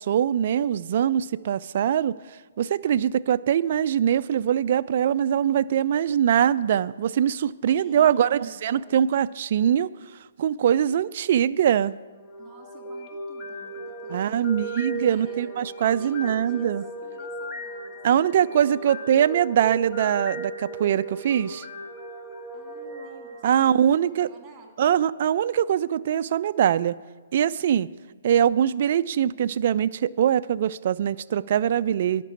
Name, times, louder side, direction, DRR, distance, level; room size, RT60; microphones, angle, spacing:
voice 1, 0.0-2.2 2.6-9.9 10.4-12.0 14.1-16.8 18.0-21.7 23.4-24.3 24.8-27.0 27.3-27.9 28.2-32.2, right 9 dB, 55° right, 15 dB, 0.3 m, -22 dB
voice 2, 7.7-8.9 12.4-14.4 14.7-15.5 16.0-16.7 17.0-19.2 22.5-25.0, right 3 dB, 20° right, 2 dB, 2.3 m, -51 dB
sound 1, 12.2-24.3, right 1 dB, 20° left, 1.3 m, -37 dB
10.0 x 5.9 x 8.5 m, 1.4 s
hypercardioid pair, 135°, 0 cm